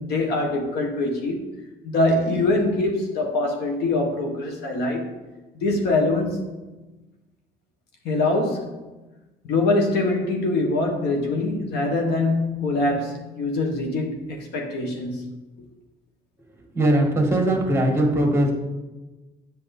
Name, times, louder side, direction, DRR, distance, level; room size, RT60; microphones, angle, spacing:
voice 1, 0.0-1.4 1.8-5.1 5.6-6.5 8.0-8.8 9.4-15.3, left 2 dB, 75° left, 3 dB, 1.6 m, -23 dB
voice 2, 16.7-18.5, right 1 dB, 15° right, 1 dB, 1.7 m, -20 dB
8.1 x 6.4 x 4.2 m, 1.1 s
cardioid pair, 110°, 17 cm